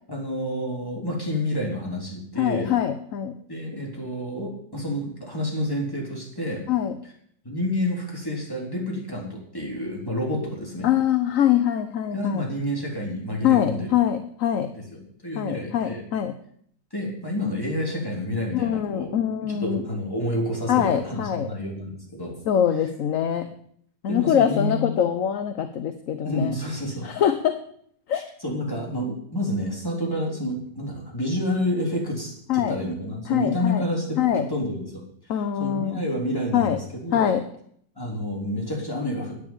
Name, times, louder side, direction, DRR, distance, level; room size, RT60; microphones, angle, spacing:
voice 1, 0.1-2.7 3.5-6.6 7.4-10.9 12.1-13.9 14.8-16.0 16.9-19.2 19.5-22.4 24.1-25.0 26.2-27.1 28.1-35.3 35.6-37.3 38.0-39.4, left 1 dB, 10° left, -2 dB, 3.6 m, -29 dB
voice 2, 2.4-3.3 6.7-6.9 10.8-12.5 13.4-14.7 15.3-16.3 18.5-19.8 20.7-21.5 22.5-23.5 24.0-26.6 27.0-27.6 28.1-28.2 32.5-32.8 33.3-33.8 34.2-34.5 35.3-36.0 36.5-36.8 37.1-37.4, left 10 dB, 55° left, 9 dB, 1.0 m, -23 dB
10.0 x 9.0 x 8.7 m, 0.66 s
omnidirectional pair, 1.9 m